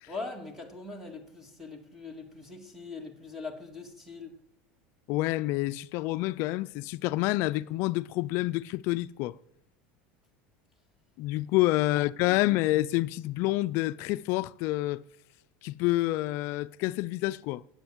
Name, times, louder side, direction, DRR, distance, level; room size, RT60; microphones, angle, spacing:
voice 1, 0.1-4.3, left 3 dB, 5° right, 2.0 m, -41 dB
voice 2, 5.1-9.3 11.2-15.0 15.6-17.6, left 18 dB, 55° left, 0.5 m, -28 dB
17.5 x 8.7 x 7.3 m
supercardioid pair, 150°, 5 cm